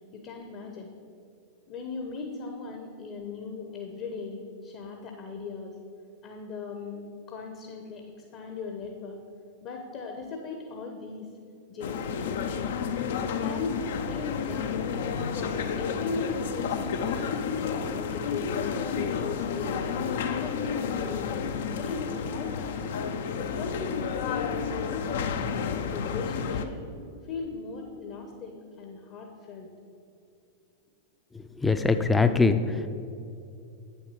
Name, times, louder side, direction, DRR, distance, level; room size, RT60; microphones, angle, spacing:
voice 1, 0.1-0.9 1.7-5.8 6.2-8.0 8.3-9.2 9.6-11.3 11.7-12.7 13.0-14.8 15.2-17.5 17.9-19.9 20.3-21.3 21.7-22.9 23.4-25.4 25.6-26.8 27.2-29.7, left 4 dB, 40° left, 3 dB, 0.9 m, -38 dB
sound 1, 11.8-26.7, left 6 dB, 60° left, 0.5 m, -31 dB
voice 2, 31.3-32.9, left 4 dB, 10° left, 10 dB, 0.5 m, -23 dB
8.3 x 7.3 x 4.9 m, 2.6 s
figure-of-eight pair, 90°, 0 cm